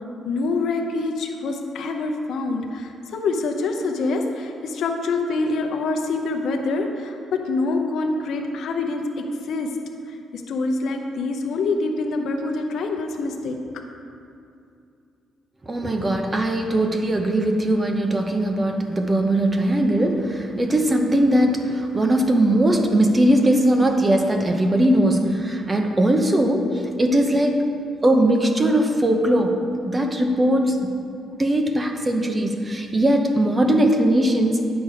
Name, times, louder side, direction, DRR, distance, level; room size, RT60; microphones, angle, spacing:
voice 1, 0.2-9.7 10.3-13.6, left 3 dB, 70° left, 3 dB, 0.7 m, -25 dB
voice 2, 15.7-27.7 28.0-29.6 29.8-30.9 31.4-34.6, right 1 dB, 25° right, 3 dB, 0.9 m, -20 dB
9.3 x 6.1 x 4.9 m, 2.5 s
cardioid pair, 90°, 0 cm